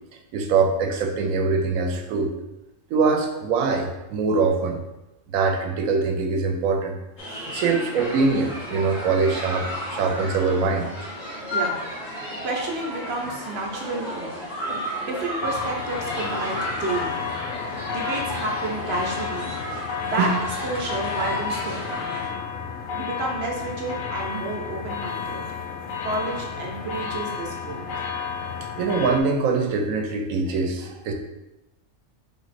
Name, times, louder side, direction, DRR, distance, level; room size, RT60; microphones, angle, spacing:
voice 1, 0.3-2.3 2.9-4.8 5.3-7.0 7.5-10.9 20.2-20.3 28.8-31.1, right 4 dB, 90° right, 4 dB, 1.0 m, -23 dB
sound 1, 7.2-22.3, equal, 55° left, 1.5 m, -33 dB
voice 2, 12.4-14.4 15.0-17.3 17.9-19.6 20.0-20.3 20.6-22.1 22.9-25.4 26.0-27.8, right 2 dB, 55° right, 0 dB, 1.0 m, -30 dB
sound 2, 15.4-29.2, left 6 dB, 90° left, 1.0 m, -32 dB
3.7 x 3.0 x 4.1 m, 0.96 s
omnidirectional pair, 1.4 m